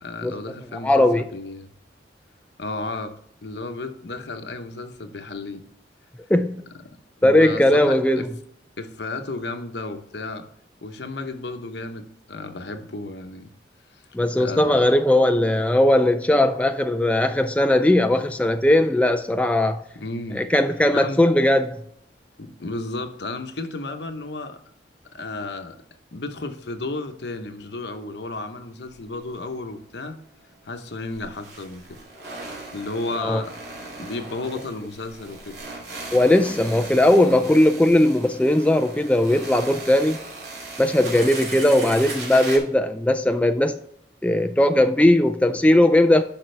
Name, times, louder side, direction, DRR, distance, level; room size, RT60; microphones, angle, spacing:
voice 1, 0.0-1.7 2.6-3.1 3.4-5.6 6.8-8.3 8.8-10.5 10.8-13.5 13.9-14.0 14.4-14.8 19.9-20.4 20.9-21.2 22.4-24.6 25.1-25.8 26.1-30.2 30.6-32.0 32.7-33.6 34.0-35.6, left 2 dB, 65° left, 0.9 m, -33 dB
voice 2, 0.8-1.2 6.3-6.6 7.2-8.3 14.1-19.8 20.4-21.8 33.2-33.4 36.1-40.2 40.8-43.8 44.2-46.2, left 1 dB, 5° left, 0.3 m, -18 dB
sound 1, 28.9-29.0 29.3-29.4 30.9-42.6, right 3 dB, 60° right, 2.7 m, -37 dB
10.5 x 5.9 x 3.3 m
head